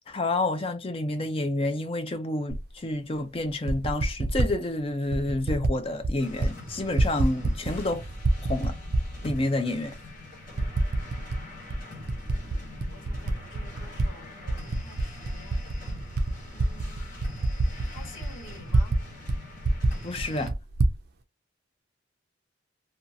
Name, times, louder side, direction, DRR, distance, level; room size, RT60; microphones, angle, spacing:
voice 1, 0.1-8.0 8.5-8.8 9.2-9.9 20.0-20.5, left 2 dB, 30° left, 0.5 m, -29 dB
Typing, 2.5-2.6 3.5-4.5 5.1-5.7 6.0-6.5 6.8-7.9 8.2-9.4 9.9-10.0 10.6-11.4 11.7-14.1 14.4-19.0 19.3-19.4 19.6-21.0, right 2 dB, 50° right, 0.4 m, -26 dB
sound 1, 6.2-20.5, left 1 dB, 45° left, 1.2 m, -43 dB
voice 2, 12.9-15.7 16.5-17.2 17.8-19.0, left 1 dB, 80° left, 1.3 m, -50 dB
2.6 x 2.3 x 2.7 m
head